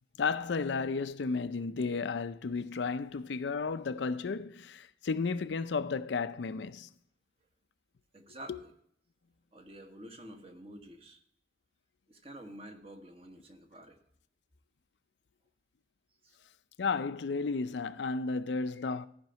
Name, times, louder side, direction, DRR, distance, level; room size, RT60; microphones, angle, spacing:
voice 1, 0.2-6.9 8.5-8.6 16.8-19.1, left 4 dB, 80° left, 0.5 m, -33 dB
voice 2, 8.1-8.7 9.5-11.2 12.1-14.0 16.2-16.4, right 1 dB, 35° right, 1.3 m, -49 dB
14.0 x 5.2 x 5.7 m
head